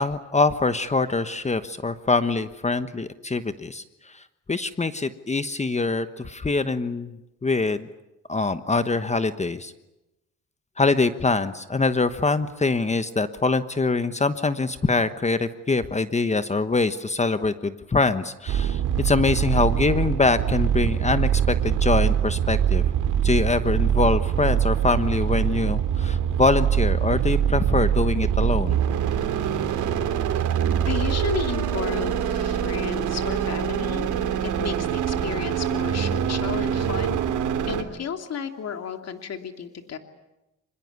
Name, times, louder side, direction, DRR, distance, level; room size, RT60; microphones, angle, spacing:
voice 1, 0.0-7.1 7.4-7.9 8.3-9.7 10.8-22.8 23.2-28.8, left 3 dB, 20° left, 11 dB, 1.2 m, -24 dB
sound 1, 18.5-37.8, right 9 dB, 80° right, 2.8 m, -24 dB
voice 2, 30.9-34.1 34.4-37.2 37.6-40.0, left 7 dB, 55° left, 6 dB, 2.9 m, -33 dB
25.0 x 22.0 x 9.5 m, 0.96 s
cardioid pair, 90°, 30 cm